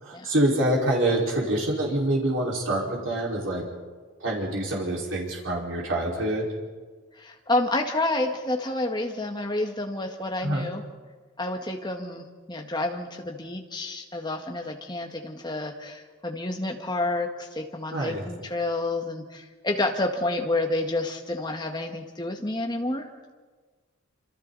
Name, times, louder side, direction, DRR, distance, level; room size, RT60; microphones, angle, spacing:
voice 1, 0.0-3.6 4.2-6.5 10.4-10.7 17.9-18.2, right 1 dB, 75° right, -4 dB, 5.0 m, -26 dB
voice 2, 7.2-10.8 11.4-23.3, left 2 dB, 20° left, 3 dB, 1.8 m, -29 dB
27.5 x 26.5 x 4.2 m, 1.5 s
head